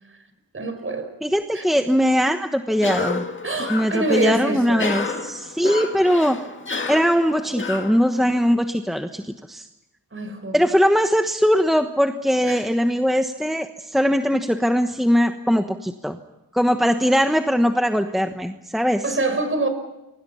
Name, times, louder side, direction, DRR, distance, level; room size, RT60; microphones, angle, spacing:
voice 1, 0.5-1.1 1.5-1.6 3.4-4.9 10.1-10.6 12.4-12.7 19.0-19.7, right 2 dB, 35° right, 5.7 m, -25 dB
voice 2, 1.2-3.2 3.7-6.4 6.9-9.7 10.5-16.2 16.5-19.2, equal, ahead, 1.2 m, -20 dB
Cough, 2.7-8.5, left 4 dB, 35° left, 1.9 m, -31 dB
29.5 x 24.0 x 5.7 m
wide cardioid pair, 110°, 36 cm